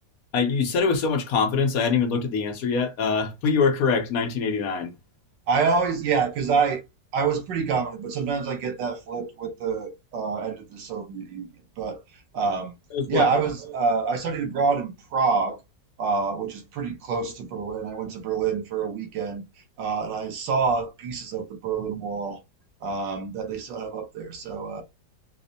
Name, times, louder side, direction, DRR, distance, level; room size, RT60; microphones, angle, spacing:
voice 1, 0.3-4.9 12.9-13.3, left 5 dB, 65° left, 1.1 m, -24 dB
voice 2, 5.5-6.8 7.1-11.5 11.8-12.0 12.3-12.7 13.1-15.6 16.0-19.4 19.8-22.4 22.8-24.8, right 5 dB, 90° right, 1.5 m, -27 dB
4.9 x 2.1 x 2.6 m
omnidirectional pair, 1.8 m